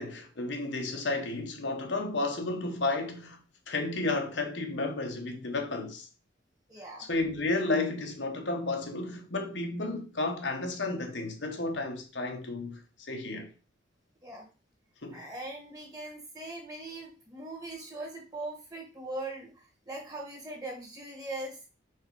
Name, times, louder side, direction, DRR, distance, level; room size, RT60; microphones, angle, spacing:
voice 1, 0.0-3.4 3.7-6.1 7.1-12.8 13.1-13.5 15.0-15.3, left 2 dB, 75° left, 1.3 m, -32 dB
voice 2, 6.7-7.0 14.2-14.4 15.1-21.6, right 2 dB, 20° right, 1.5 m, -40 dB
4.8 x 4.6 x 4.7 m
head